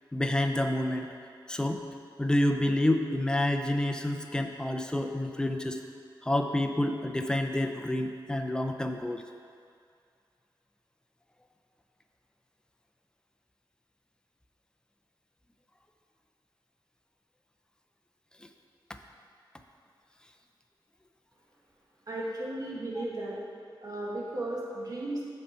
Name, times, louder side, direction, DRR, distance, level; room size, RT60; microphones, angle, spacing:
voice 1, 0.1-1.1 1.5-1.8 2.2-5.8 6.2-9.2, left 1 dB, 10° left, 4 dB, 0.4 m, -28 dB
voice 2, 22.1-23.4 23.8-25.3, right 1 dB, 50° right, -5 dB, 1.4 m, -35 dB
6.7 x 5.5 x 4.3 m, 2.3 s
wide cardioid pair, 115°, 8 cm